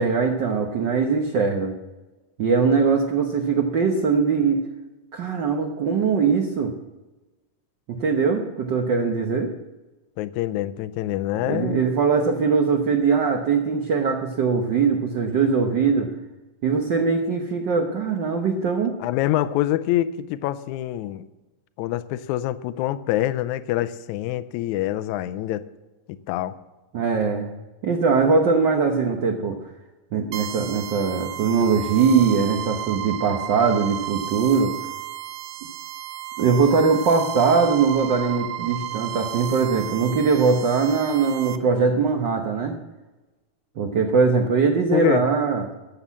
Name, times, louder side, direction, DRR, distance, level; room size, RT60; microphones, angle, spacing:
voice 1, 0.0-1.7 2.4-4.6 5.1-6.7 7.9-9.5 11.5-16.1 16.6-18.9 26.9-27.5 27.8-29.6 30.1-34.8 36.4-42.7 43.8-45.6, right 5 dB, 65° right, 2 dB, 1.1 m, -21 dB
voice 2, 10.2-11.8 19.0-21.2 21.8-25.7 26.1-26.5 44.9-45.3, left 14 dB, 80° left, 14 dB, 2.0 m, -25 dB
sound 1, 30.3-41.6, right 13 dB, 90° right, 2.3 m, -33 dB
14.0 x 7.9 x 7.3 m, 1.1 s
omnidirectional pair, 3.5 m